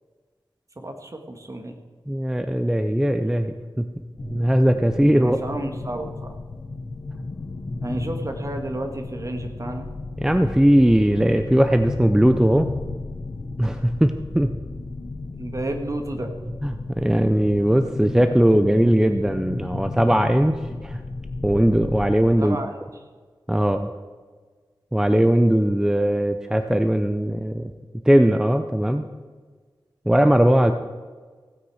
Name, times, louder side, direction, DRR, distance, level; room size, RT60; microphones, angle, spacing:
voice 1, 0.8-1.7 5.1-6.3 7.8-9.9 15.4-16.3 22.4-22.8, right 1 dB, 40° right, 5 dB, 1.6 m, -31 dB
voice 2, 2.1-3.9 4.2-5.4 10.2-12.7 13.6-14.5 16.6-20.5 20.8-21.0 21.4-22.6 23.5-23.9 24.9-27.7 28.1-29.1 30.1-30.7, equal, 5° right, 8 dB, 0.6 m, -19 dB
sound 1, 4.2-22.2, left 3 dB, 50° left, 1.0 m, -34 dB
16.0 x 9.2 x 4.8 m, 1.5 s
wide cardioid pair, 90°, 9 cm